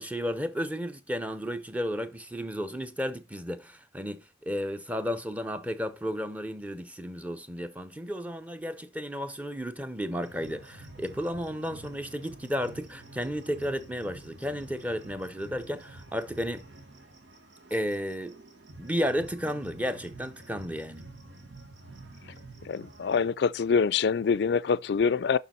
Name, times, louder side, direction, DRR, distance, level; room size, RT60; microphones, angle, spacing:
voice 1, 0.0-16.7 17.7-18.4 18.8-21.0, equal, 10° right, 0.7 m, -33 dB
sound 1, 10.2-23.3, right 2 dB, 85° right, 1.6 m, -48 dB
voice 2, 22.7-25.4, left 5 dB, 60° left, 0.4 m, -25 dB
6.7 x 6.0 x 4.4 m
head